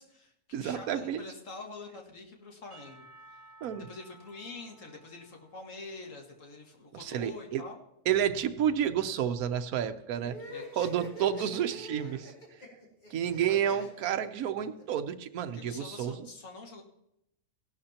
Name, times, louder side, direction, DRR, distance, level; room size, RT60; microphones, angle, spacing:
voice 1, 0.0-3.0 3.9-7.8 10.4-12.3 13.5-13.9 15.5-16.8, left 3 dB, 60° left, 1 dB, 2.2 m, -46 dB
voice 2, 0.5-1.2 3.6-3.9 7.0-7.6 8.1-10.4 10.8-12.3 13.1-16.3, right 9 dB, 80° right, 8 dB, 1.2 m, -30 dB
Percussion / Church bell, 2.7-6.8, right 1 dB, 50° right, 2.2 m, -57 dB
sound 1, 10.2-14.8, equal, 30° left, 2.8 m, -45 dB
17.0 x 12.0 x 2.9 m, 0.82 s
omnidirectional pair, 1.5 m